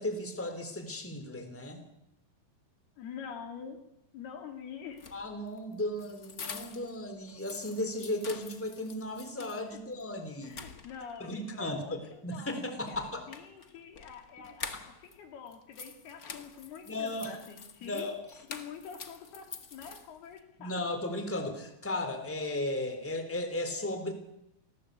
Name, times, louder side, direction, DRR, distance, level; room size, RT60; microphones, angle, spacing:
voice 1, 0.0-1.8 5.1-10.6 11.2-13.3 16.9-17.3 17.8-18.2 20.6-24.1, left 1 dB, 5° left, 7 dB, 3.4 m, -35 dB
voice 2, 3.0-3.9 4.1-5.2 9.7-9.8 10.4-18.1 18.5-20.8, left 7 dB, 85° left, 5 dB, 5.0 m, -46 dB
sound 1, 4.9-7.0 7.3-9.6 10.0-10.1 10.4-11.3 12.9-15.2 15.5-20.4, left 5 dB, 45° left, 1.2 m, -46 dB
28.0 x 20.0 x 8.4 m, 0.85 s
omnidirectional pair, 4.4 m